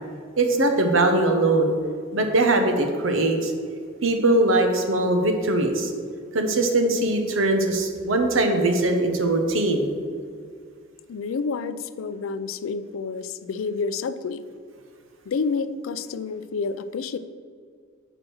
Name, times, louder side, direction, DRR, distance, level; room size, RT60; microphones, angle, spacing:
voice 1, 0.4-1.7 2.1-3.5 4.0-5.9 6.3-9.9, right 2 dB, 70° right, 4 dB, 0.9 m, -21 dB
voice 2, 11.1-14.4 15.3-17.2, left 4 dB, 80° left, 13 dB, 0.4 m, -29 dB
6.1 x 5.0 x 6.2 m, 2.1 s
head